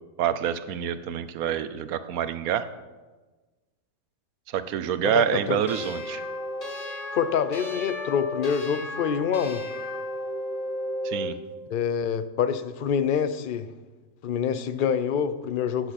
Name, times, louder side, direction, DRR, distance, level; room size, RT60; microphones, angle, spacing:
voice 1, 0.2-2.7 4.5-6.2 11.0-11.4, right 9 dB, 90° right, 12 dB, 1.1 m, -27 dB
voice 2, 5.0-5.6 7.1-9.6 11.7-13.7 14.2-15.9, left 7 dB, 50° left, 12 dB, 0.6 m, -26 dB
sound 1, 5.7-11.4, left 1 dB, 25° left, 1.7 m, -33 dB
16.0 x 8.9 x 4.2 m, 1.2 s
omnidirectional pair, 1.5 m